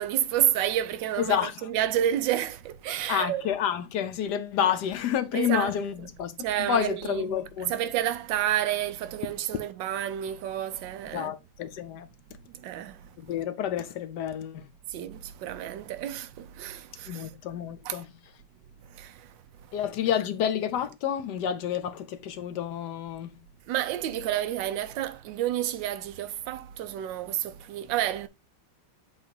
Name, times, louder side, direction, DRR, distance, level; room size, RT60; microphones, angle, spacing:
voice 1, 0.0-3.5 4.6-4.7 5.3-5.7 6.4-7.2 7.7-11.4 12.5-13.2 14.9-17.3 17.8-18.0 18.8-19.7 23.7-28.3, right 11 dB, 70° right, 1.3 m, -30 dB
voice 2, 3.1-6.3 6.7-7.7 11.1-12.1 13.2-14.7 17.1-18.2 19.7-23.4, left 9 dB, 70° left, 1.0 m, -29 dB
7.5 x 2.5 x 5.1 m
omnidirectional pair, 2.3 m